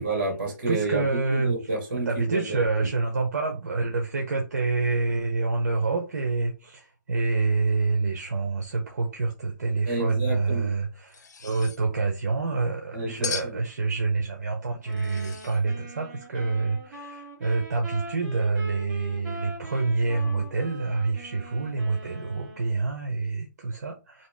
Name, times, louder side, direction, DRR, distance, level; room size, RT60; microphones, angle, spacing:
voice 1, 0.0-2.9 9.9-10.7 12.9-13.6, right 2 dB, 35° right, 1.6 m, -29 dB
voice 2, 0.7-1.5 2.1-24.3, right 3 dB, 60° right, 0.7 m, -27 dB
sound 1, 11.1-11.8 13.2-13.6 14.9-15.6, left 6 dB, 65° left, 0.6 m, -36 dB
sound 2, 14.8-22.8, right 1 dB, 5° right, 0.6 m, -43 dB
2.8 x 2.7 x 3.4 m
hypercardioid pair, 175°, 10 cm